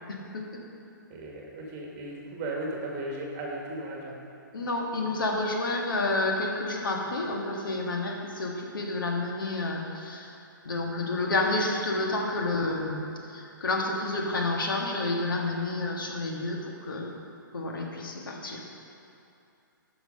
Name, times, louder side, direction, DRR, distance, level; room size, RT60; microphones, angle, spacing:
voice 1, 0.1-0.5 4.5-10.3 10.6-17.2 17.5-18.6, left 2 dB, 75° left, 0 dB, 1.7 m, -30 dB
voice 2, 1.1-4.2, right 1 dB, 30° right, -2 dB, 1.6 m, -36 dB
9.1 x 6.0 x 5.3 m, 2.7 s
hypercardioid pair, 150°, 11 cm